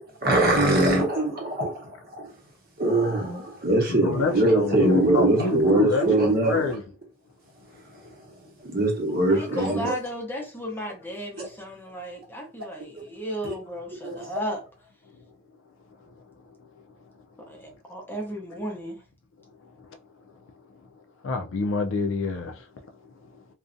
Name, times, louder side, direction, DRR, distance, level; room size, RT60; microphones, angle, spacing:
voice 1, 0.2-1.9 2.2-2.3 2.8-6.7 8.6-9.9 11.4-11.5 13.4-13.6 14.0-14.2, right 2 dB, 50° right, 0.8 m, -22 dB
voice 2, 3.9-6.8 21.2-22.5, left 4 dB, 80° left, 0.4 m, -27 dB
voice 3, 9.3-14.6 17.5-19.0, equal, 10° left, 0.6 m, -34 dB
2.5 x 2.1 x 2.5 m
head